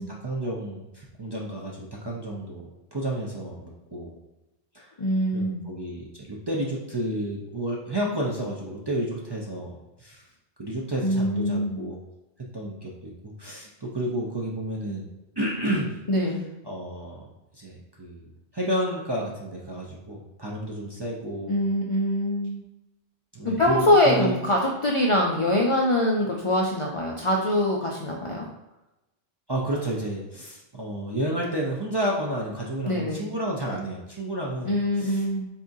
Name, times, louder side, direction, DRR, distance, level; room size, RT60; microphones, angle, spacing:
voice 1, 0.0-4.2 4.7-4.9 5.3-10.3 10.6-12.0 12.4-15.0 15.4-15.9 16.7-17.3 17.5-18.3 18.5-21.6 23.3-24.3 29.5-35.2, right 1 dB, 30° right, -3 dB, 0.5 m, -31 dB
voice 2, 5.0-5.6 11.0-11.8 16.1-16.4 21.5-22.6 23.4-28.5 32.8-33.3 34.7-35.5, left 1 dB, 45° left, -2 dB, 0.4 m, -23 dB
4.2 x 3.7 x 2.6 m, 0.99 s
omnidirectional pair, 1.1 m